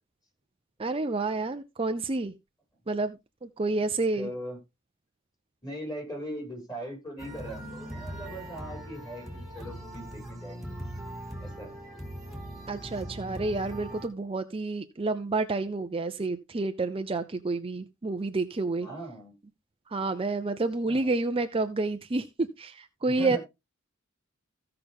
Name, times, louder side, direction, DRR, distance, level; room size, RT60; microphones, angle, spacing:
voice 1, 0.8-2.3 2.9-4.3 12.7-18.9 19.9-22.3 22.6-23.4, right 3 dB, 25° right, 7 dB, 0.6 m, -29 dB
voice 2, 4.1-4.6 5.6-10.8 11.4-11.7 18.8-19.3 20.8-21.1 23.0-23.4, equal, 20° left, 0 dB, 7.5 m, -40 dB
sound 1, 7.2-14.1, right 1 dB, ahead, 3.2 m, -40 dB
15.5 x 5.8 x 3.5 m, 0.24 s
head